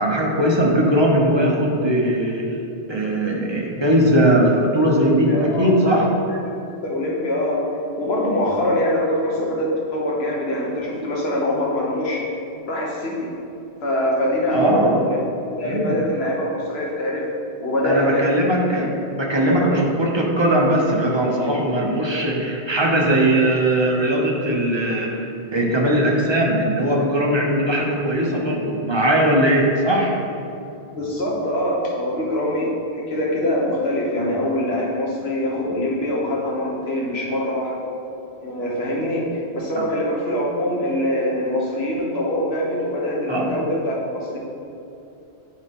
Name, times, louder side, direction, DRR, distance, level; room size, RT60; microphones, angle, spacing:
voice 1, 0.0-2.5 2.9-6.1 14.5-15.0 15.6-16.0 17.8-30.1 39.8-39.9 43.3-43.6, right 1 dB, 25° right, -2 dB, 0.8 m, -19 dB
voice 2, 5.3-6.0 6.3-6.4 6.8-7.7 8.0-12.2 12.7-13.3 13.8-15.2 15.6-17.3 17.6-18.5 19.5-19.9 30.9-37.9 38.4-44.4, left 1 dB, 65° left, -3 dB, 1.4 m, -23 dB
9.1 x 3.9 x 3.6 m, 2.8 s
omnidirectional pair, 1.1 m